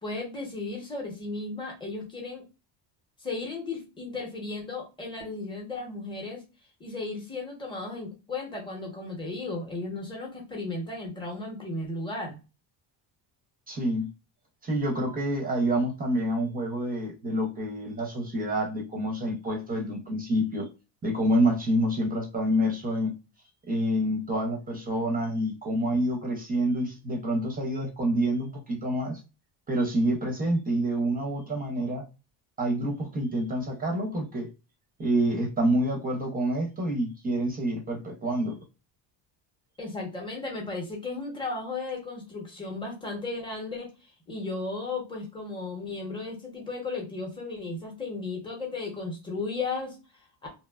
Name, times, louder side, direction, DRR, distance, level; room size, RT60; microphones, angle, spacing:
voice 1, 0.0-2.4 3.2-6.4 6.8-12.4 39.8-50.0, left 3 dB, 10° left, 0.8 m, -35 dB
voice 2, 13.7-14.1 14.6-20.7 21.0-23.1 23.7-29.2 29.7-32.0 32.6-34.5 35.0-38.6, right 1 dB, 20° right, 0.6 m, -27 dB
2.8 x 2.1 x 2.2 m
cardioid pair, 155°, 46 cm